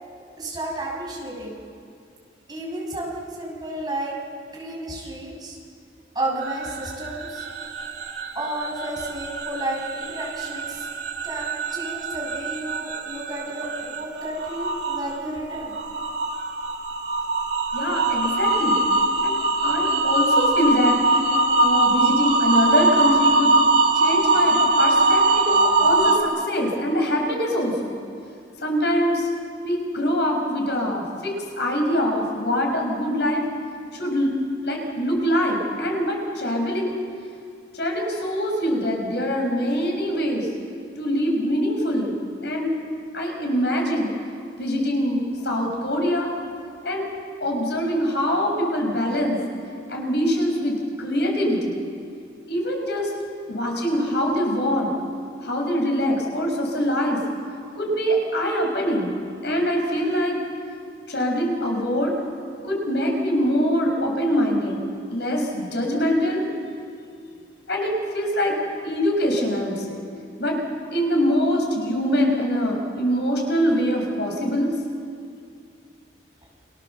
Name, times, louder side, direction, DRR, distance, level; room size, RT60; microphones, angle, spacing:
voice 1, 0.4-1.6 2.5-4.1 4.5-5.6 6.1-7.4 8.3-15.8, right 1 dB, 25° right, -3 dB, 6.5 m, -32 dB
sound 1, 6.4-15.0 15.3-26.2, right 2 dB, 70° right, 2.5 m, -22 dB
voice 2, 17.7-18.8 19.2-19.3 19.6-21.0 21.6-23.6 23.9-27.9 28.6-29.3 29.6-33.4 33.9-37.0 37.7-40.5 41.0-42.7 43.1-44.1 44.6-46.3 46.8-47.1 47.4-49.4 49.9-51.8 52.5-53.1 53.5-54.9 55.4-57.2 57.8-59.1 59.4-60.4 61.1-62.1 62.6-64.8 65.1-66.4 67.7-68.6 68.8-70.0 70.4-70.6 70.9-74.7, equal, 65° left, 1 dB, 5.6 m, -24 dB
29.5 x 26.0 x 7.0 m, 2.3 s
head